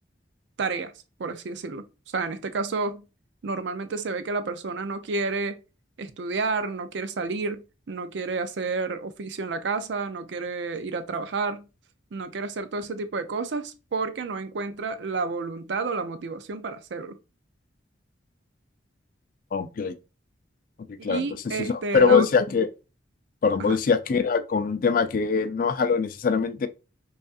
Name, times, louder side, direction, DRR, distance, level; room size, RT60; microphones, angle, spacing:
voice 1, 0.6-0.9 1.2-1.8 2.1-3.0 3.4-5.6 6.0-11.7 12.1-17.2 21.0-22.3 23.6-23.8, right 4 dB, 65° right, 0.4 m, -30 dB
voice 2, 19.5-19.9 20.9-21.3 21.6-22.7 23.4-26.7, left 5 dB, 45° left, 0.3 m, -22 dB
5.1 x 2.5 x 2.4 m
head